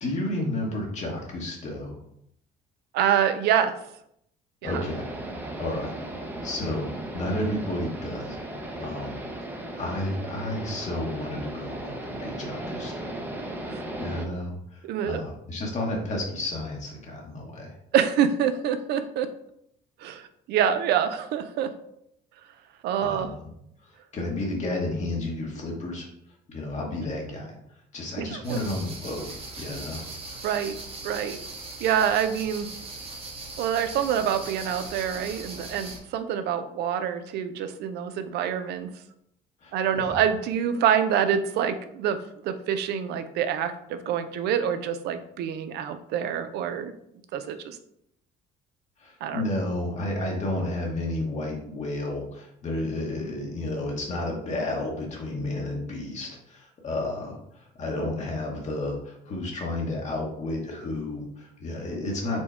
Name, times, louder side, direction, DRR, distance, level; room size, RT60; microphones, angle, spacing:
voice 1, 0.0-2.0 4.6-5.1 5.6-6.9 7.1-8.4 8.8-9.2 9.8-13.2 14.0-17.8 23.0-23.5 23.8-26.1 26.5-27.6 27.9-29.3 29.6-30.1 39.6-40.2 49.0-62.4, left 1 dB, 45° left, -1 dB, 0.9 m, -32 dB
voice 2, 2.9-3.7 4.6-4.8 13.7-13.8 14.8-15.2 17.9-19.3 20.0-21.7 22.8-23.3 28.2-28.6 30.4-30.7 31.0-31.4 31.8-32.7 33.6-38.9 39.7-42.2 42.4-46.9 47.3-47.8 49.2-49.4, right 8 dB, 75° right, 10 dB, 0.5 m, -26 dB
sound 1, 4.6-14.3, right 1 dB, 10° right, 0.6 m, -36 dB
sound 2, 28.4-36.0, right 3 dB, 35° right, 1.1 m, -40 dB
4.4 x 2.2 x 4.2 m, 0.74 s
cardioid pair, 110°, 17 cm